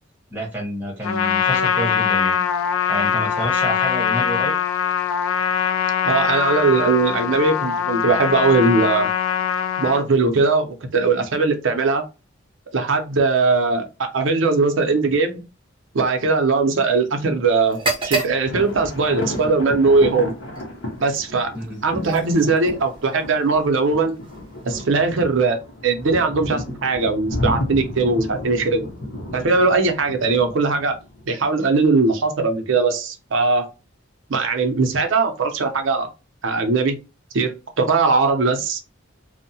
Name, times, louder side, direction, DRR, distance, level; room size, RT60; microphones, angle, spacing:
voice 1, 0.3-2.4 2.9-4.5 21.5-21.8, right 1 dB, 10° right, 1.0 m, -28 dB
Trumpet, 1.0-10.0, left 8 dB, 90° left, 0.4 m, -22 dB
voice 2, 6.0-9.1 9.8-12.0 12.7-15.4 15.9-17.8 18.0-20.3 21.0-21.5 21.8-24.1 24.6-25.6 25.8-28.9 29.3-30.9 31.3-33.7 34.3-36.1 36.4-37.0 37.3-38.8, right 3 dB, 70° right, 0.5 m, -19 dB
sound 1, 17.7-25.5, right 3 dB, 25° right, 0.6 m, -33 dB
sound 2, 18.4-31.3, left 1 dB, 70° left, 0.8 m, -32 dB
2.6 x 2.1 x 2.7 m
head